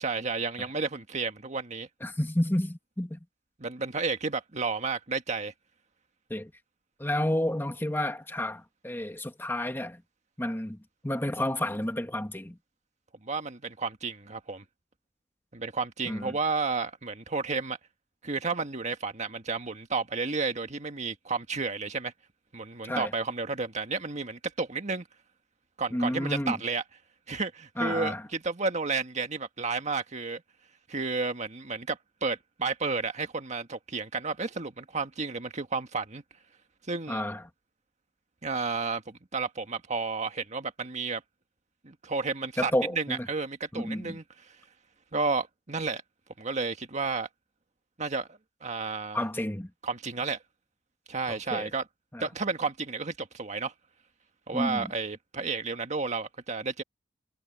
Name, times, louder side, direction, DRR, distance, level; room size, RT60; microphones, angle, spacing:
voice 1, 0.0-1.9 3.6-5.5 13.2-14.6 15.5-17.8 18.2-22.1 22.5-25.1 25.8-26.8 27.3-30.4 30.9-36.2 36.9-37.2 38.4-41.2 41.8-44.2 45.1-46.0 46.4-47.3 48.0-49.3 49.8-50.4 51.1-51.9 52.2-53.7 54.5-56.8, right 4 dB, 40° right, 1.7 m, -32 dB
voice 2, 2.0-3.2 6.3-6.5 7.0-10.0 10.4-10.8 11.0-12.6 16.0-16.3 22.8-23.1 25.9-26.6 27.8-28.2 37.1-37.4 42.6-43.3 43.7-44.2 49.1-49.7 51.5-51.7 52.1-52.2 54.5-54.9, left 1 dB, 10° left, 1.4 m, -30 dB
head